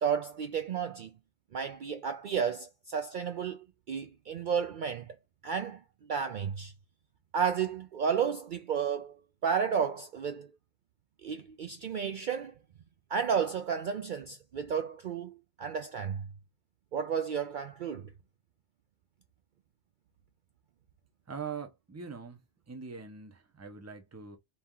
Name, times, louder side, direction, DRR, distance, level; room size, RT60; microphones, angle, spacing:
voice 1, 0.0-1.1 1.5-5.1 5.4-6.7 7.3-10.5 11.2-12.5 13.1-16.3 16.9-18.1, right 7 dB, 55° right, 0.6 m, -32 dB
voice 2, 21.3-22.4 22.7-24.4, right 6 dB, 15° right, 0.7 m, -42 dB
4.2 x 2.9 x 3.7 m
omnidirectional pair, 1.1 m